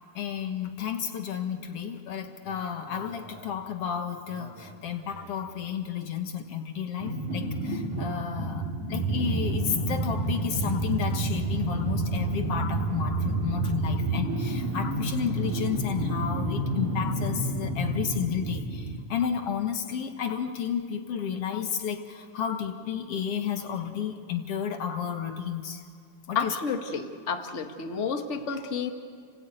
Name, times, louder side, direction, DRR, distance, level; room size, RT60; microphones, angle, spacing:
voice 1, 0.2-8.6 8.9-25.8 26.3-26.6, left 8 dB, 55° left, 6 dB, 1.9 m, -32 dB
sound 1, 2.5-2.6 2.9-3.5 4.3-5.3 7.0-19.0, right 2 dB, 65° right, 4.0 m, -30 dB
voice 2, 26.3-28.9, left 6 dB, 40° left, 4 dB, 1.0 m, -30 dB
29.5 x 18.0 x 9.1 m, 2.3 s
omnidirectional pair, 3.7 m